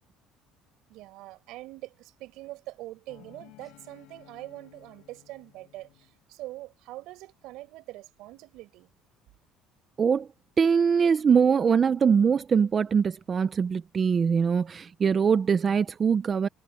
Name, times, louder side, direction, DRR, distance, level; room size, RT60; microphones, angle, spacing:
voice 1, 0.9-8.9, right 18 dB, 75° right, 4.7 m, -43 dB
sound 1, 3.1-6.2, left 18 dB, 75° left, 4.0 m, -55 dB
voice 2, 10.6-16.5, right 6 dB, 30° right, 0.5 m, -22 dB
cardioid pair, 130°, 0 cm